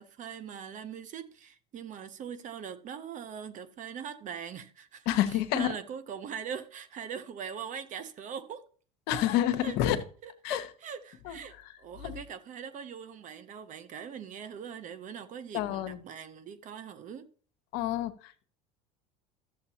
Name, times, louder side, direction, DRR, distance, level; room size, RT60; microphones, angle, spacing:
voice 1, 0.0-8.6 9.6-17.3, right 7 dB, 45° right, 0.9 m, -42 dB
voice 2, 5.1-5.7 9.1-10.0 10.4-10.7 11.3-11.4 12.0-12.2 15.5-16.0 17.7-18.4, left 12 dB, 65° left, 0.9 m, -28 dB
13.0 x 7.1 x 2.9 m
supercardioid pair, 95°, 18 cm